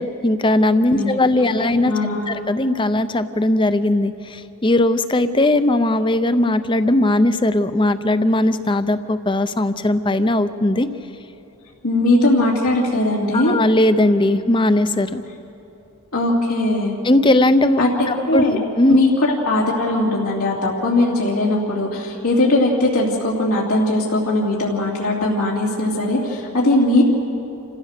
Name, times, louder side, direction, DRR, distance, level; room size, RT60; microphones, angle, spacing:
voice 1, 0.0-1.9 2.3-10.9 13.3-15.2 17.0-19.0, left 1 dB, 20° left, 12 dB, 0.6 m, -18 dB
voice 2, 1.3-2.3 11.8-13.6 16.1-17.0 17.8-18.6 18.9-27.0, left 1 dB, 85° left, -5 dB, 2.9 m, -19 dB
28.5 x 15.5 x 6.6 m, 2.9 s
head